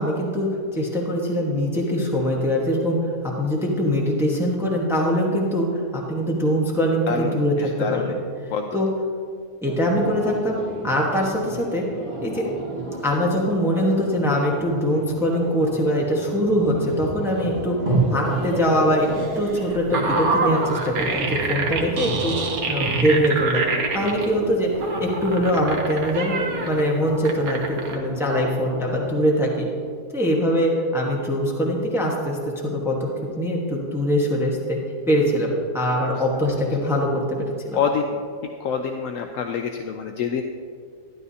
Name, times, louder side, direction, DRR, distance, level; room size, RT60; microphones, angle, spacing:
voice 1, 0.0-3.0 3.4-8.2 8.7-8.9 9.6-10.6 10.8-11.8 12.2-12.4 13.0-17.7 18.1-19.1 19.4-22.3 22.7-23.6 23.9-24.7 25.0-26.4 26.6-29.7 30.1-32.4 32.6-33.1 33.4-34.8 35.1-35.5 35.7-37.1 37.4-37.8, equal, ahead, -2 dB, 1.1 m, -22 dB
voice 2, 7.1-8.1 8.5-8.8 37.7-38.2 38.6-40.4, left 6 dB, 70° left, 4 dB, 0.9 m, -26 dB
sound 1, 9.6-29.1, right 2 dB, 35° right, 1.8 m, -31 dB
sound 2, 19.2-24.2 24.8-26.8 27.2-27.9, right 4 dB, 80° right, 1.5 m, -26 dB
12.5 x 10.5 x 2.8 m, 2.1 s
omnidirectional pair, 1.5 m